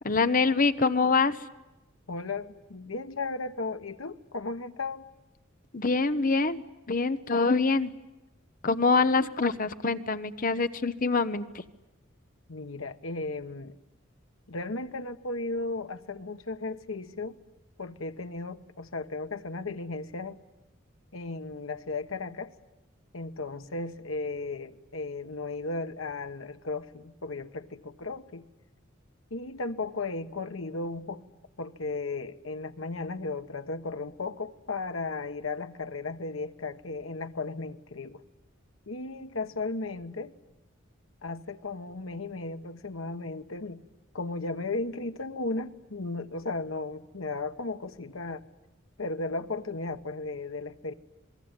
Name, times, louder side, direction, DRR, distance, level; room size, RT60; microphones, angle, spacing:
voice 1, 0.0-1.4 5.7-7.9 8.6-11.4, left 4 dB, 40° left, 1.0 m, -25 dB
voice 2, 2.1-5.1 12.5-13.8 14.5-17.4 17.8-20.4 21.1-22.5 23.1-28.4 29.3-31.2 31.6-38.2 38.9-40.3 41.2-43.8 44.1-48.4 49.0-50.9, left 3 dB, 85° left, 1.2 m, -35 dB
27.0 x 21.5 x 9.7 m
head